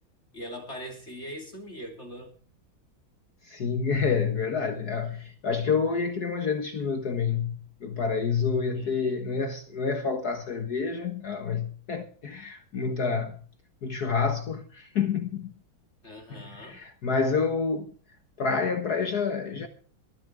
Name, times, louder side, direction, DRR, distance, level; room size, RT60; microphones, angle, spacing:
voice 1, 0.3-2.3 8.7-9.1 16.0-16.8, equal, 35° left, 3.3 m, -41 dB
voice 2, 3.4-13.4 13.8-15.5 16.3-17.9 18.4-19.7, left 5 dB, 55° left, 1.8 m, -28 dB
21.5 x 14.5 x 3.5 m
omnidirectional pair, 2.2 m